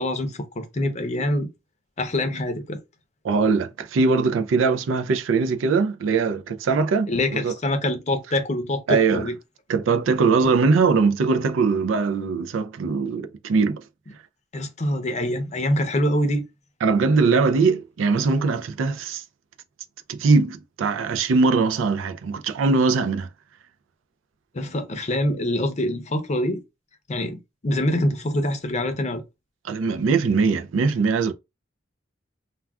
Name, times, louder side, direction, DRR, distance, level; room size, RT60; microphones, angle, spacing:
voice 1, 0.0-1.5 2.0-2.8 7.1-9.4 14.5-16.4 24.5-26.6 27.1-29.2, left 1 dB, 35° left, 0.6 m, -25 dB
voice 2, 3.2-7.5 8.9-9.3 9.7-13.8 16.8-19.2 20.1-23.3 29.6-31.3, right 4 dB, 90° right, 0.4 m, -21 dB
2.3 x 2.3 x 3.4 m
head